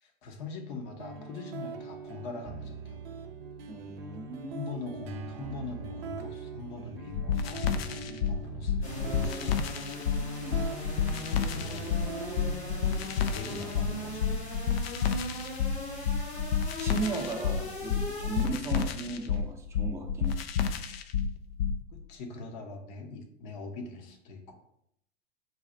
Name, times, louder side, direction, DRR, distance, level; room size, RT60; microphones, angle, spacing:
voice 1, 0.0-3.0 4.5-9.7 11.5-12.3 13.3-14.5 16.4-16.5 21.9-24.5, left 3 dB, 50° left, 4 dB, 0.8 m, -42 dB
sound 1, 1.0-19.0, right 5 dB, 60° right, 0.5 m, -43 dB
voice 2, 3.7-4.6 10.4-10.6 16.1-16.3 16.8-20.4, right 3 dB, 10° right, 0 dB, 0.5 m, -36 dB
sound 2, 7.1-21.8, left 7 dB, 65° left, 0.5 m, -30 dB
sound 3, 8.8-18.5, left 2 dB, 85° left, 1.3 m, -39 dB
4.1 x 2.4 x 4.0 m, 0.75 s
figure-of-eight pair, 90°, 32 cm